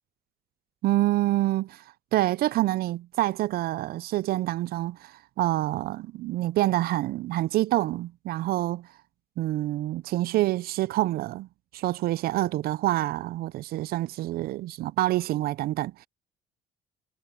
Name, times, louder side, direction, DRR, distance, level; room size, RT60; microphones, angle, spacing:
voice 1, 0.8-1.8 2.1-8.9 9.4-11.5 11.7-16.1, right 16 dB, 65° right, 0.4 m, -27 dB
cardioid pair, 110°, 17 cm